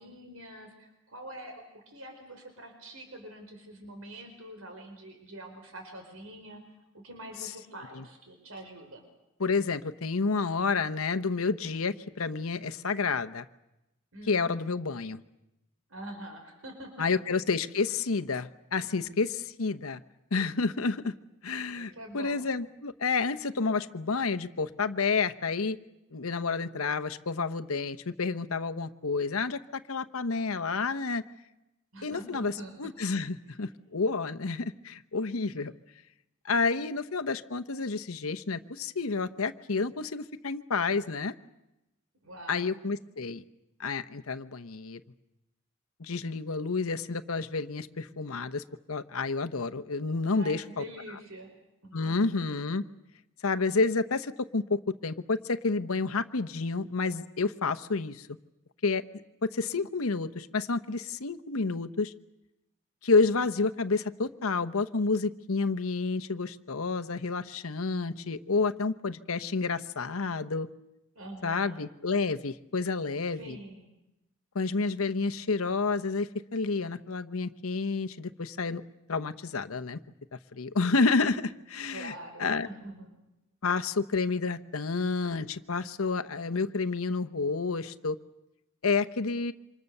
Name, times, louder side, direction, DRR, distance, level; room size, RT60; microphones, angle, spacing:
voice 1, 0.0-6.6 6.9-9.0 14.1-14.5 15.9-17.1 21.7-22.5 31.9-32.7 42.2-42.7 50.3-51.5 51.8-52.3 71.1-71.8 73.3-73.9 81.9-83.1, right 1 dB, 85° right, 4 dB, 4.7 m, -45 dB
voice 2, 9.4-13.4 14.3-15.2 17.0-20.0 20.3-21.1 21.4-25.8 26.1-31.2 32.0-32.5 32.8-35.7 36.4-41.3 42.5-43.4 43.8-45.0 46.0-50.8 51.9-52.8 53.4-58.3 58.8-59.0 59.4-62.1 63.0-70.7 71.4-73.6 74.5-78.8 79.1-80.0 80.5-82.1 82.4-82.7 83.6-88.2 88.8-89.5, left 4 dB, 85° left, 10 dB, 0.9 m, -29 dB
27.5 x 26.0 x 6.7 m, 0.92 s
head